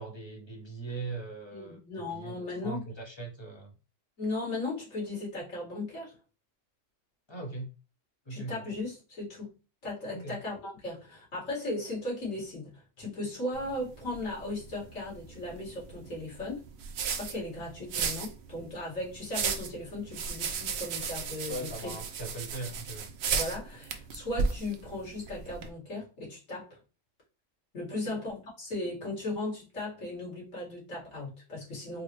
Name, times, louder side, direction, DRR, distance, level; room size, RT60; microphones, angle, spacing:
voice 1, 0.0-3.7 7.3-7.7 8.3-8.6 10.1-10.4 21.5-23.1 27.9-28.2, right 3 dB, 25° left, 0.7 m, -40 dB
voice 2, 1.5-2.9 4.2-6.2 8.3-9.5 9.8-16.6 17.1-22.0 23.3-26.8 27.7-32.0, left 2 dB, 80° left, 2.3 m, -37 dB
sound 1, 13.5-25.7, right 5 dB, 65° right, 0.8 m, -36 dB
4.5 x 2.1 x 3.0 m
omnidirectional pair, 1.3 m